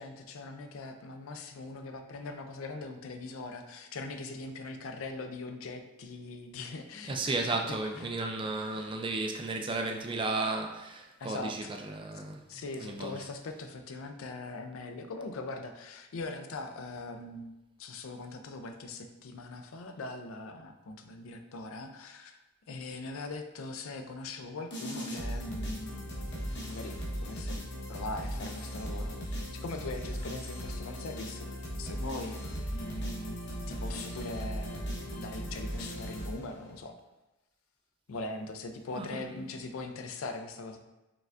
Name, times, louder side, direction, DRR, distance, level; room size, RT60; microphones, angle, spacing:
voice 1, 0.0-8.1 8.7-8.9 11.2-11.7 12.5-17.5 17.8-22.4 22.7-26.2 26.7-27.6 27.9-31.5 31.8-32.4 32.7-33.4 33.7-34.9 35.1-37.0 38.1-40.8, left 3 dB, 85° left, 6 dB, 0.4 m, -41 dB
voice 2, 7.1-13.2 38.9-39.5, right 3 dB, 25° right, 4 dB, 0.3 m, -34 dB
sound 1, 24.7-36.8, equal, 55° left, 1.0 m, -38 dB
4.9 x 3.3 x 2.4 m, 1.0 s
head